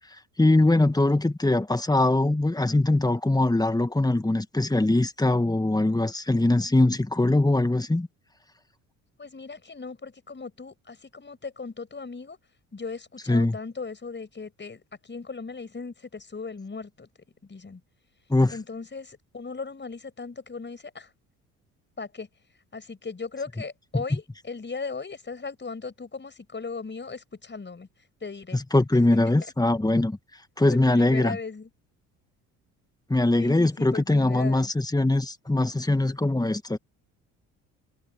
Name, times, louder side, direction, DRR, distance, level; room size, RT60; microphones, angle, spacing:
voice 1, 0.4-8.1 13.3-13.6 18.3-18.6 28.5-30.2 30.6-31.4 33.1-36.8, left 2 dB, 10° left, 2.0 m, -22 dB
voice 2, 9.2-12.4 12.7-17.1 17.4-17.8 18.5-21.1 22.0-22.3 22.7-27.9 28.2-28.6 30.9-31.7 33.4-34.7, left 4 dB, 25° left, 6.6 m, -37 dB
hypercardioid pair, 55°, 41 cm